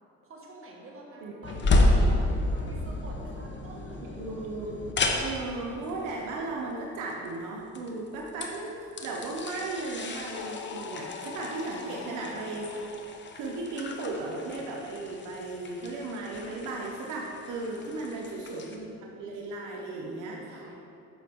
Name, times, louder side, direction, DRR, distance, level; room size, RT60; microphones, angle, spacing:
voice 1, 0.2-4.2 11.7-12.2 17.7-18.3 19.6-20.8, right 1 dB, 45° right, -2 dB, 1.6 m, -48 dB
sound 1, 1.4-18.8, left 2 dB, 40° left, 0.8 m, -32 dB
voice 2, 4.2-4.9 5.2-12.7 13.3-20.8, right 2 dB, 90° right, -1 dB, 0.8 m, -36 dB
sound 2, 10.3-14.6, left 6 dB, 85° left, 0.5 m, -43 dB
7.3 x 5.9 x 3.5 m, 2.8 s
cardioid pair, 90°, 30 cm